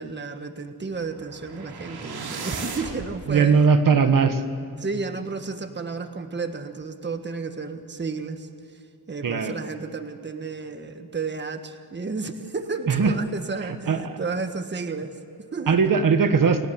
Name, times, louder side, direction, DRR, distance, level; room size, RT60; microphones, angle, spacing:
voice 1, 0.0-3.7 4.8-8.5 9.1-15.9, right 4 dB, 30° right, 7 dB, 1.6 m, -32 dB
sound 1, 0.9-3.1, right 4 dB, 80° right, 3.7 m, -36 dB
voice 2, 3.3-4.4 9.2-9.5 12.9-13.1 13.6-14.2 15.7-16.7, right 5 dB, 55° right, 8 dB, 1.6 m, -19 dB
29.5 x 18.5 x 8.1 m, 2.6 s
wide cardioid pair, 140°, 38 cm